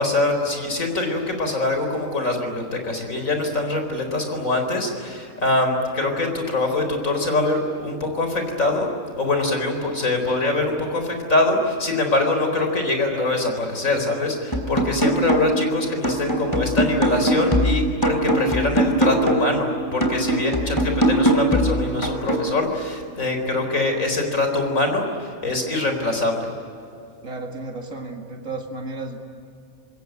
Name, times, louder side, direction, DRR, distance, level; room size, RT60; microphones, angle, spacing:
voice 1, 0.0-8.9 9.2-26.5, left 2 dB, 90° left, 5 dB, 4.6 m, -23 dB
sound 1, 14.5-15.7 16.0-19.6 20.0-22.5, right 1 dB, 15° left, 3.1 m, -21 dB
voice 2, 27.2-29.2, right 3 dB, 85° right, 2 dB, 2.5 m, -33 dB
26.5 x 21.5 x 9.4 m, 2.6 s
omnidirectional pair, 1.4 m